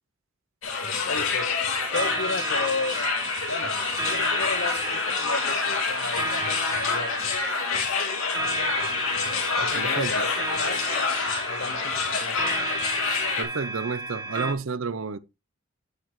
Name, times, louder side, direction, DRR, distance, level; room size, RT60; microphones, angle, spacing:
sound 1, 0.6-13.4, left 5 dB, 85° left, 2.4 m, -27 dB
voice 1, 1.0-1.6 1.9-3.0 3.5-3.7 4.1-6.4 6.7-7.2 9.5-10.8 11.5-12.5, left 3 dB, 60° left, 1.2 m, -33 dB
sound 2, 1.9-14.5, right 2 dB, 20° right, 1.2 m, -33 dB
voice 2, 9.7-10.3 12.6-12.7 13.4-15.2, right 4 dB, 75° right, 0.6 m, -30 dB
8.2 x 8.0 x 3.1 m
head